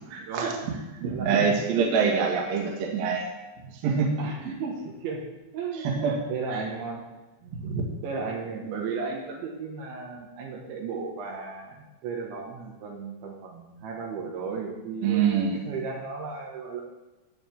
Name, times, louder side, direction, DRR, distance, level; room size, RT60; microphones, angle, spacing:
voice 1, 0.1-0.5 1.0-3.3 3.8-4.1 6.0-6.1 7.6-7.8 15.0-15.6, right 6 dB, 60° right, 0 dB, 3.0 m, -25 dB
voice 2, 1.0-1.9 4.2-5.2 5.5-7.0 7.4-16.8, right 4 dB, 75° right, -1 dB, 3.6 m, -35 dB
15.0 x 8.2 x 3.6 m, 1.1 s
omnidirectional pair, 5.5 m